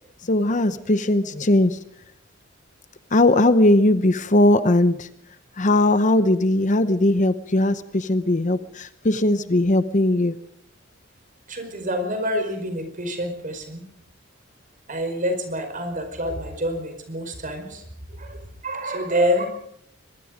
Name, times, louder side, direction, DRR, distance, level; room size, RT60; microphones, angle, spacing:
voice 1, 0.2-1.8 3.1-5.1 5.6-10.4, left 1 dB, 40° left, 12 dB, 0.9 m, -19 dB
voice 2, 11.5-13.8 14.9-17.8 18.2-19.5, equal, 40° right, 6 dB, 4.9 m, -27 dB
23.0 x 22.0 x 5.1 m, 0.71 s
head